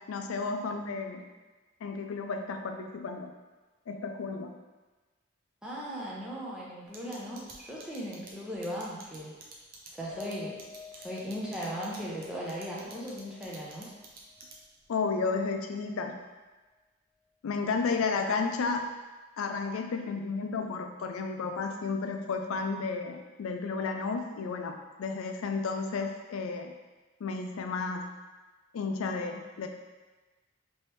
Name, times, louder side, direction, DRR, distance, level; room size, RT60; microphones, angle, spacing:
voice 1, 0.1-1.3 1.8-3.3 3.9-4.6 14.9-16.2 17.4-18.9 19.4-26.7 27.2-28.0 28.7-29.7, left 4 dB, 85° left, 5 dB, 0.4 m, -32 dB
voice 2, 5.6-9.3 9.9-10.6 10.9-13.9, equal, 5° right, -6 dB, 0.7 m, -38 dB
sound 1, 6.9-14.8, right 4 dB, 45° right, 0.6 m, -50 dB
Piano, 10.1-14.6 14.9-15.1 15.5-15.6, left 4 dB, 40° left, 0.8 m, -49 dB
3.2 x 3.0 x 3.0 m, 1.2 s
head